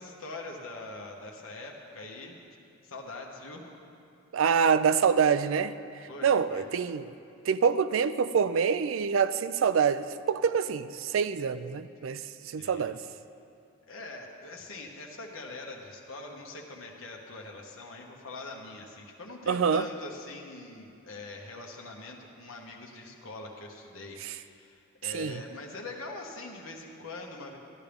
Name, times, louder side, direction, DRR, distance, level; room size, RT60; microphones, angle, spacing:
voice 1, 0.0-2.4 2.8-3.7 6.1-6.7 12.6-12.9 13.9-27.6, left 2 dB, 90° left, 0 dB, 1.2 m, -43 dB
voice 2, 4.3-7.1 7.5-13.0 19.5-19.9 24.2-24.4 25.0-25.4, right 6 dB, 70° right, 13 dB, 0.4 m, -26 dB
13.0 x 11.5 x 3.5 m, 2.5 s
head